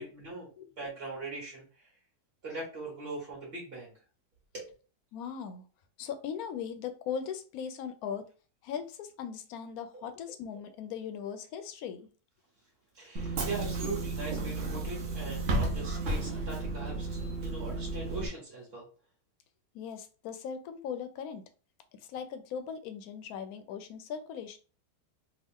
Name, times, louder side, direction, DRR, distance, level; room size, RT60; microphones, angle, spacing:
voice 1, 0.0-0.5 0.8-1.9 2.4-3.9 4.5-4.7 9.9-10.1 12.9-18.9, right 3 dB, 40° right, -3 dB, 1.3 m, -41 dB
voice 2, 5.1-5.6 6.0-8.2 8.6-12.1 19.7-21.4 22.1-24.6, left 7 dB, 70° left, 8 dB, 0.9 m, -39 dB
Bus / Engine, 13.2-18.3, right 2 dB, 55° right, 0.9 m, -33 dB
3.4 x 2.4 x 3.6 m, 0.37 s
omnidirectional pair, 1.9 m